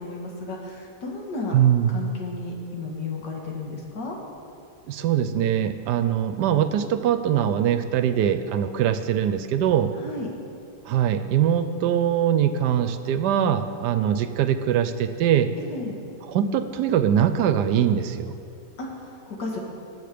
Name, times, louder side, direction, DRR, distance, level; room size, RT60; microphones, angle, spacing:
voice 1, 0.0-1.6 1.9-4.2 10.0-10.3 15.6-16.0 18.8-18.9 19.3-19.6, left 3 dB, 75° left, -1 dB, 2.4 m, -33 dB
voice 2, 1.5-2.0 4.9-9.9 10.9-15.5 16.3-18.3, right 9 dB, 75° right, 11 dB, 1.2 m, -22 dB
19.5 x 7.0 x 5.0 m, 2.6 s
omnidirectional pair, 1.9 m